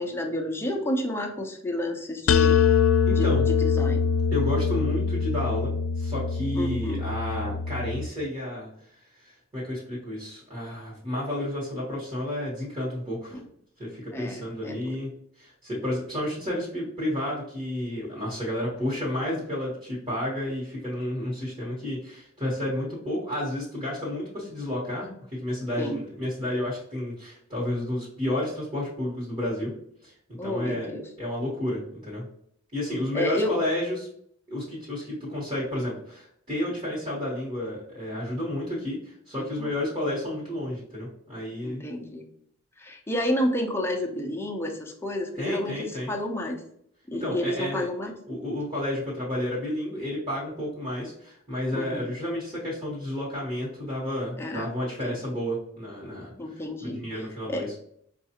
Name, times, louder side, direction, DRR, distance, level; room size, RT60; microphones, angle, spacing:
voice 1, 0.0-2.6 3.1-4.0 6.5-7.0 13.3-13.4 14.1-14.9 25.8-26.0 30.4-31.0 33.1-33.6 39.4-39.7 41.6-42.2 42.8-46.6 47.1-48.1 51.7-52.0 54.4-54.7 55.0-55.1 56.4-57.2 57.5-57.7, left 1 dB, 10° left, 2 dB, 0.5 m, -30 dB
sound 1, 2.3-8.1, left 6 dB, 85° left, 0.3 m, -23 dB
voice 2, 3.1-3.4 4.3-13.4 13.8-15.1 15.4-29.7 30.0-30.1 30.4-30.9 31.2-32.2 32.7-34.1 34.5-41.8 45.4-46.1 47.2-47.9 48.3-56.3 56.8-57.7, left 1 dB, 25° right, -8 dB, 1.2 m, -31 dB
5.1 x 2.4 x 2.8 m, 0.68 s
head